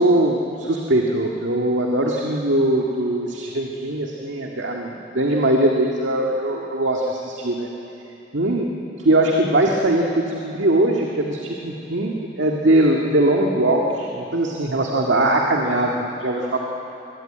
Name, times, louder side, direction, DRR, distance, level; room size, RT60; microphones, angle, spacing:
voice 1, 0.0-7.7 8.3-8.7 9.0-16.6, right 1 dB, 75° right, 0 dB, 1.9 m, -21 dB
22.5 x 20.5 x 9.1 m, 2.9 s
head